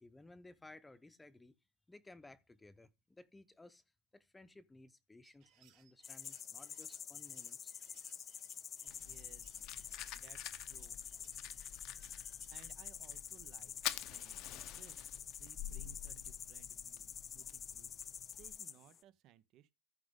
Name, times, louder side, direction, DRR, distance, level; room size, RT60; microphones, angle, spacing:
voice 1, 0.0-1.6 1.9-3.8 4.1-7.7, left 2 dB, 10° left, 0.8 m, -58 dB
sound 1, 5.2-12.7, right 10 dB, 70° right, 3.1 m, -69 dB
sound 2, 6.0-19.0, left 8 dB, 30° left, 0.4 m, -48 dB
voice 2, 8.8-9.6 10.1-11.0 11.6-12.1 12.5-13.7 14.1-17.9 18.3-19.7, right 11 dB, 55° right, 0.7 m, -63 dB
Fire, 8.9-18.6, left 14 dB, 65° left, 0.7 m, -49 dB
14.0 x 5.1 x 3.6 m
cardioid pair, 140°, 0 cm